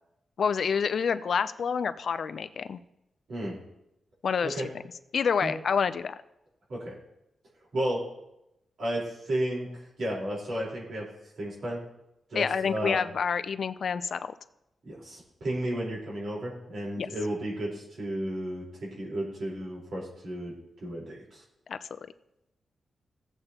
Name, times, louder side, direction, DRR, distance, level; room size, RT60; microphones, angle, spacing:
voice 1, 0.4-2.8 4.2-4.7 5.1-6.2 12.3-14.2 17.0-17.1 21.7-21.8, left 6 dB, 65° left, 13 dB, 0.5 m, -28 dB
voice 2, 7.7-8.0 8.8-9.7 10.0-11.1 11.4-11.8 12.3-13.0 14.8-20.5 20.8-21.4, right 1 dB, 75° right, -4 dB, 4.2 m, -33 dB
16.0 x 8.0 x 2.9 m, 0.87 s
cardioid pair, 75°, 0 cm